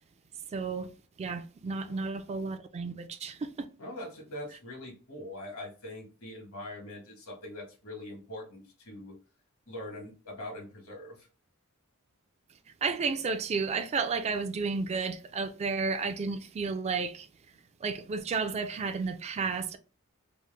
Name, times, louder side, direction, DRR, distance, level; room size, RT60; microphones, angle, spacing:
voice 1, 0.5-3.7 12.8-17.3 17.8-19.8, right 4 dB, 30° right, 0.3 m, -32 dB
voice 2, 3.8-9.2 9.7-11.3, left 1 dB, 70° left, 1.4 m, -43 dB
3.0 x 2.1 x 3.3 m
head